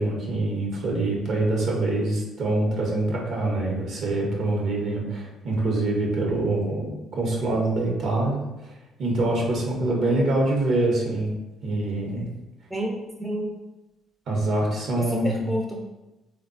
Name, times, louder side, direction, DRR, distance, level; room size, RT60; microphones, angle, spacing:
voice 1, 0.0-8.7 9.0-11.3 11.6-12.3 14.3-15.5, right 2 dB, 65° right, -2 dB, 0.8 m, -25 dB
voice 2, 12.7-13.5 15.0-15.8, equal, 20° right, -1 dB, 0.5 m, -29 dB
3.4 x 2.2 x 2.5 m, 1.0 s
hypercardioid pair, 55°, 0 cm